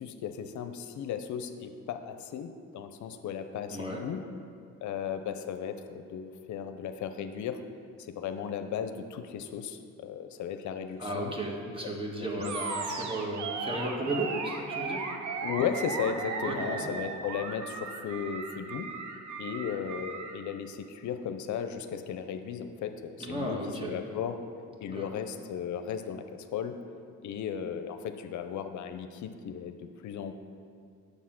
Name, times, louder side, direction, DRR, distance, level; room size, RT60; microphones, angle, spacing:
voice 1, 0.0-4.2 4.8-7.6 8.0-11.3 11.8-12.5 15.4-18.9 19.4-24.4 24.8-26.8 27.2-30.3, left 8 dB, 70° left, 8 dB, 0.6 m, -36 dB
voice 2, 3.7-4.0 11.0-15.1 16.3-16.8 23.2-23.9 24.9-25.1, right 1 dB, 15° right, -1 dB, 1.6 m, -34 dB
Animal, 12.4-20.4, right 4 dB, 70° right, 0.9 m, -36 dB
7.3 x 6.7 x 5.8 m, 2.3 s
cardioid pair, 90°, 30 cm